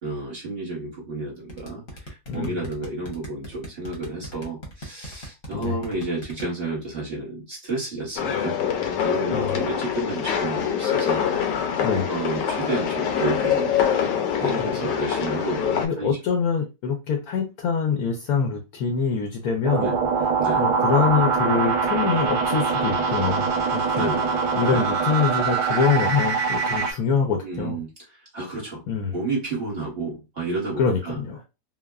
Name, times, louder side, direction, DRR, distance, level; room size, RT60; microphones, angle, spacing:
voice 1, 0.0-8.6 9.0-11.2 12.1-13.8 14.4-16.2 19.8-20.0 20.4-20.7 23.9-24.9 27.4-28.8 29.1-31.2, right 3 dB, 40° right, -5 dB, 1.0 m, -31 dB
sound 1, 1.5-6.5, right 1 dB, 45° left, 0.8 m, -38 dB
voice 2, 2.3-2.7 5.5-5.8 9.3-9.6 11.8-12.1 14.4-14.5 15.8-20.3 20.6-24.1 24.6-27.8 28.9-29.1 30.8-31.4, left 6 dB, 70° left, 2 dB, 0.9 m, -25 dB
sound 2, 8.2-15.9, left 8 dB, 85° left, 1.2 m, -24 dB
sound 3, 19.6-26.9, right 5 dB, 65° right, 1.1 m, -23 dB
3.3 x 2.0 x 2.3 m, 0.26 s
omnidirectional pair, 1.9 m